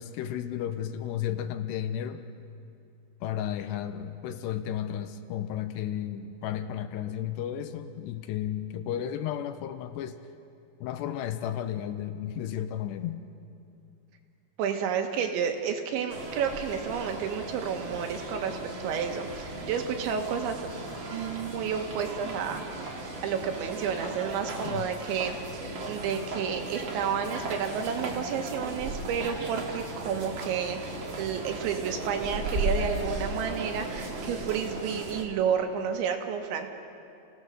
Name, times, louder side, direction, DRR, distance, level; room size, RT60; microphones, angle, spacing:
voice 1, 0.0-2.2 3.2-10.2 10.8-13.3 24.7-24.9, left 10 dB, 80° left, 10 dB, 2.7 m, -33 dB
voice 2, 14.6-20.7 21.1-36.7, right 7 dB, 85° right, 5 dB, 3.7 m, -31 dB
sound 1, 16.1-35.2, right 2 dB, 45° right, 1.6 m, -36 dB
28.5 x 17.0 x 6.5 m, 2.6 s
omnidirectional pair, 5.1 m